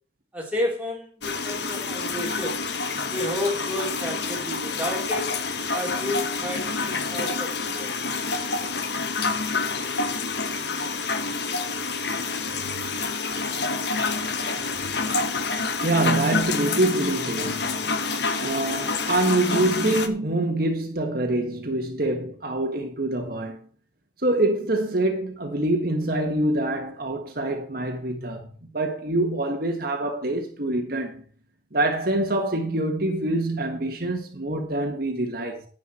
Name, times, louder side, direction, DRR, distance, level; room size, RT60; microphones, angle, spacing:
voice 1, 0.3-2.6 3.1-5.4 5.7-7.9, left 1 dB, 10° right, 3.7 m, -31 dB
sound 1, 1.2-20.1, left 4 dB, 65° left, 1.3 m, -28 dB
voice 2, 15.8-17.8 18.4-23.6 24.2-28.5 28.7-31.2 31.7-35.7, right 2 dB, 55° right, 1.7 m, -25 dB
10.5 x 9.6 x 4.5 m
head